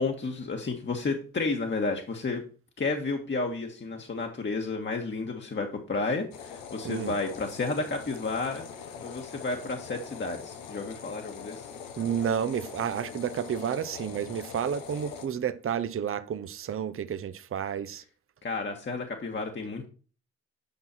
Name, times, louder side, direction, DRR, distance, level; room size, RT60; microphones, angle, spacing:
voice 1, 0.0-2.4 2.8-8.6 9.0-11.7 18.4-19.8, left 3 dB, 35° left, 1.5 m, -31 dB
sound 1, 6.3-15.3, left 7 dB, 90° left, 1.0 m, -43 dB
voice 2, 6.8-7.2 12.0-18.0, right 8 dB, 40° right, 0.7 m, -31 dB
8.6 x 5.6 x 4.3 m
supercardioid pair, 55°, 32 cm